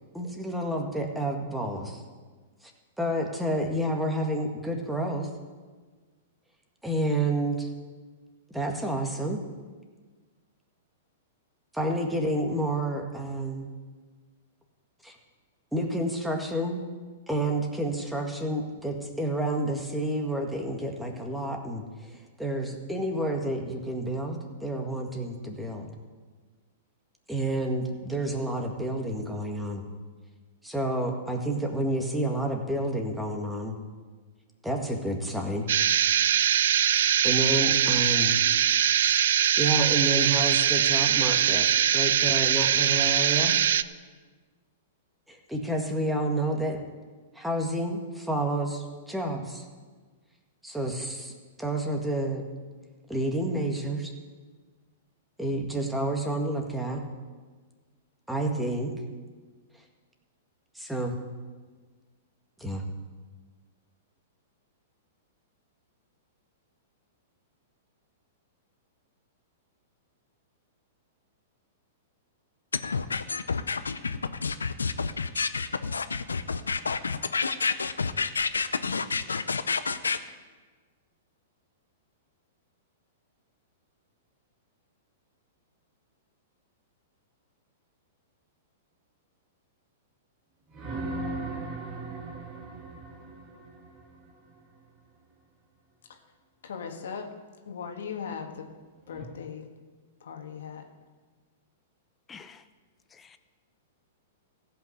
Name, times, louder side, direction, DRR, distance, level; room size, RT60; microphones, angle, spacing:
voice 1, 0.1-2.0 3.0-5.3 6.8-7.7 8.5-9.4 11.7-13.7 15.0-15.1 15.7-16.8 17.3-25.9 27.3-29.9 30.6-33.7 34.6-35.7 36.9-38.4 39.0-41.6 41.9-43.6 45.3-46.8 47.3-49.6 50.6-51.3 51.6-52.4 53.1-54.1 55.4-57.0 58.3-58.9 60.7-61.2 62.6-62.8, right 1 dB, 5° right, 2 dB, 1.8 m, -29 dB
sound 1, 35.7-43.8, right 10 dB, 70° right, 0.4 m, -22 dB
sound 2, 72.7-80.2, left 5 dB, 90° left, 0.6 m, -28 dB
sound 3, 90.7-94.6 99.1-99.2, right 2 dB, 30° right, 2.1 m, -37 dB
voice 2, 96.6-97.3 97.7-98.7 99.1-99.7 100.2-100.8, left 6 dB, 75° left, 4 dB, 1.6 m, -38 dB
voice 3, 102.3-102.6 103.2-103.4, left 6 dB, 20° left, 11 dB, 0.8 m, -48 dB
15.0 x 5.7 x 8.0 m, 1.4 s
hypercardioid pair, 115°, 0 cm